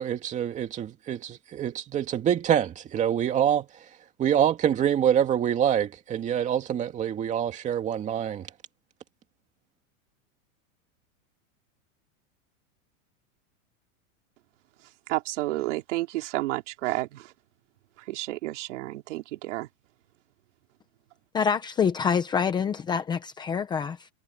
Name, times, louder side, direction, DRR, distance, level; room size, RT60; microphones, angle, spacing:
voice 1, 0.0-3.7 4.2-8.5, right 9 dB, 20° right, 2.2 m, -25 dB
voice 2, 15.1-17.3 18.1-19.7, right 18 dB, 60° right, 3.6 m, -31 dB
voice 3, 21.3-24.1, left 6 dB, 10° left, 0.8 m, -26 dB
supercardioid pair, 170°, 40 cm